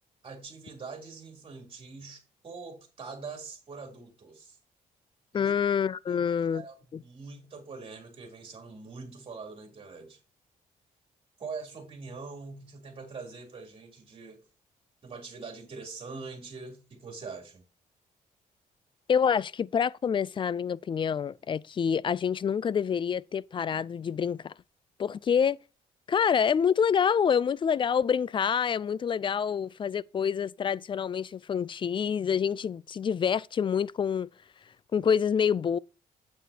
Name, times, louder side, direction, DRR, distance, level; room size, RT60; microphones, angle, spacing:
voice 1, 0.2-4.6 5.3-5.5 6.1-10.2 11.4-14.4 15.0-17.6, right 4 dB, 40° right, 3.4 m, -43 dB
voice 2, 5.3-6.6 6.9-7.0 19.1-24.5 25.0-25.6 26.1-34.3 34.9-35.8, left 7 dB, 35° left, 0.4 m, -27 dB
9.1 x 8.4 x 2.9 m
cardioid pair, 105°, 15 cm